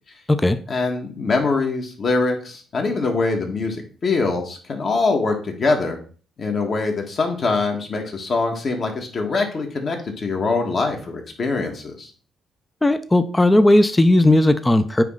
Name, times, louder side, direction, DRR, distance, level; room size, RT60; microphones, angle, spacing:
voice 1, 0.7-3.8 4.0-6.0 6.4-12.1, left 3 dB, 45° left, 3 dB, 1.7 m, -23 dB
voice 2, 12.8-15.0, left 1 dB, 15° left, 10 dB, 0.5 m, -16 dB
8.9 x 3.1 x 3.8 m, 0.41 s
cardioid pair, 90°, 0 cm